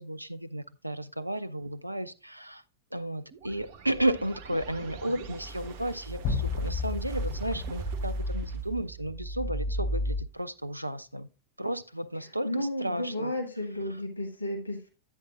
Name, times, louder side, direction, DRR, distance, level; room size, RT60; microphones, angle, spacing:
voice 1, 0.0-2.6 2.9-11.3 11.6-13.3, right 1 dB, 85° right, 0.4 m, -33 dB
sound 1, 3.3-10.2, right 1 dB, 50° right, 0.9 m, -35 dB
sound 2, 6.2-9.1, left 6 dB, 45° left, 3.7 m, -35 dB
voice 2, 12.4-14.9, left 1 dB, 80° left, 1.5 m, -32 dB
11.5 x 8.5 x 2.4 m
figure-of-eight pair, 90°, 0 cm